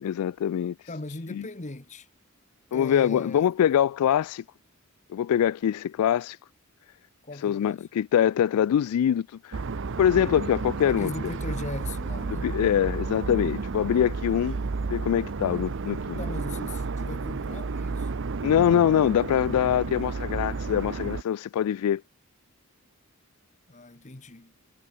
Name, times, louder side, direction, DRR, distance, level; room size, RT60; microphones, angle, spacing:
voice 1, 0.0-0.7 1.3-1.4 2.7-4.4 5.1-6.4 7.4-9.6 10.0-11.1 12.3-14.6 14.9-16.2 18.4-22.0, left 9 dB, 90° left, 0.3 m, -24 dB
voice 2, 0.9-2.1 2.7-3.5 7.2-7.9 10.9-12.5 16.2-18.1 23.7-24.5, left 2 dB, 35° left, 1.4 m, -38 dB
sound 1, 9.5-21.2, right 4 dB, 60° right, 0.6 m, -32 dB
head